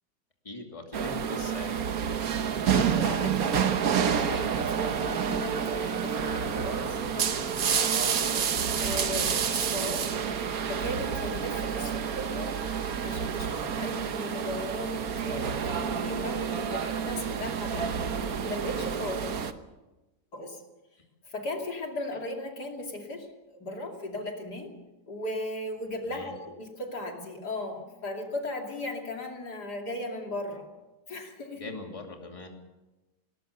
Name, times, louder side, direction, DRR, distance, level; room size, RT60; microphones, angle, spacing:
voice 1, 0.4-1.8 26.1-26.3 31.5-32.5, left 2 dB, 20° left, 2 dB, 2.7 m, -40 dB
sound 1, 0.9-19.5, right 7 dB, 60° right, 1.5 m, -29 dB
voice 2, 2.7-3.8 4.1-8.4 8.8-10.1 10.7-12.6 13.0-18.0 18.4-19.3 20.3-20.6 21.3-24.7 25.1-30.7 31.1-31.6, left 1 dB, 70° left, 2 dB, 3.2 m, -37 dB
20.5 x 19.0 x 6.8 m, 1.1 s
omnidirectional pair, 1.8 m